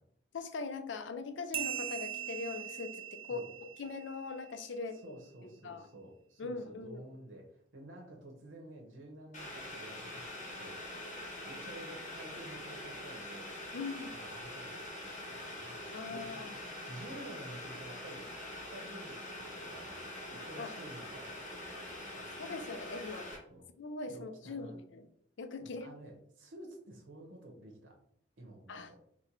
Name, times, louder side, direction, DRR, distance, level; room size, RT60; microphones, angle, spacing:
voice 1, 0.3-3.5 3.8-5.0 5.4-5.9 6.4-7.0 13.7-14.2 15.9-16.6 20.6-20.7 22.3-23.3 23.8-25.1 25.4-25.9 28.7-28.9, left 4 dB, 75° left, 9 dB, 0.5 m, -41 dB
sound 1, 1.5-4.6, right 11 dB, 30° right, 0.4 m, -41 dB
voice 2, 4.9-11.0 11.4-13.5 14.1-14.8 15.3-15.8 16.1-18.2 18.7-22.4 23.5-23.6 24.1-24.8 25.6-28.0 28.4-29.0, right 1 dB, 85° right, 0 dB, 0.9 m, -51 dB
Boiling, 9.3-23.4, left 1 dB, 40° left, 1.3 m, -44 dB
4.0 x 2.2 x 4.4 m, 0.68 s
head